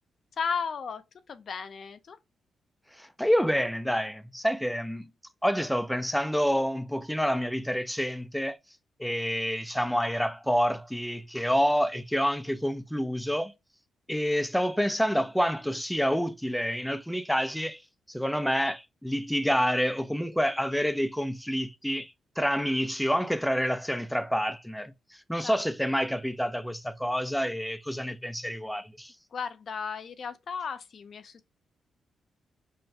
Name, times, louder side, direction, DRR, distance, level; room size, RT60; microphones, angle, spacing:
voice 1, 0.4-2.2 25.4-25.6 29.3-31.5, left 6 dB, 60° left, 0.5 m, -35 dB
voice 2, 2.9-5.1 5.4-8.6 9.0-13.5 14.1-17.8 18.1-29.1, equal, ahead, 0.5 m, -28 dB
5.6 x 2.2 x 2.7 m
cardioid pair, 70°, 0 cm